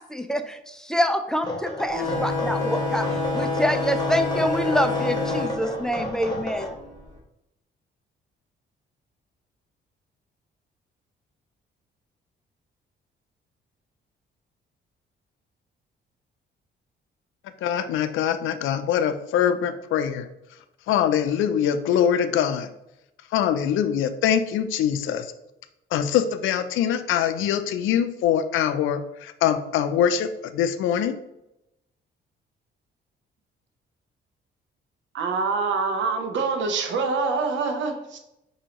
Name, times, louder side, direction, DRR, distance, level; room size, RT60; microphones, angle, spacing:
voice 1, 0.0-3.1 3.3-6.7, equal, 5° left, 8 dB, 0.4 m, -26 dB
sound 1, 1.4-6.7, left 1 dB, 20° left, 1.2 m, -32 dB
sound 2, 1.9-7.0, left 3 dB, 40° right, 1.5 m, -28 dB
voice 2, 17.6-20.3 20.9-22.7 23.3-25.3 25.9-31.1, left 9 dB, 85° left, 10 dB, 0.4 m, -23 dB
voice 3, 35.1-38.2, right 4 dB, 70° right, 6 dB, 0.8 m, -25 dB
6.0 x 2.8 x 2.9 m, 0.88 s
cardioid pair, 90°, 20 cm